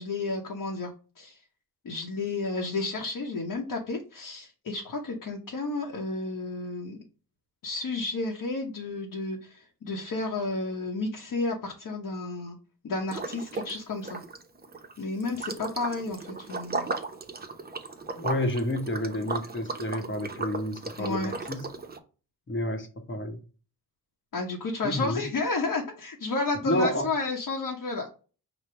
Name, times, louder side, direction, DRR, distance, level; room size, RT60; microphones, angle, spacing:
voice 1, 0.0-1.4 1.8-7.0 7.6-12.6 12.8-14.2 15.0-16.9 21.0-21.3 24.3-28.1, left 3 dB, 55° left, 0.9 m, -32 dB
Liquid, 13.1-13.8 14.0-22.0, right 3 dB, 25° right, 0.7 m, -36 dB
voice 2, 18.1-21.6 22.5-23.4 24.8-25.2 26.6-27.1, left 1 dB, 30° left, 1.0 m, -30 dB
5.1 x 2.2 x 4.4 m
cardioid pair, 65°, 39 cm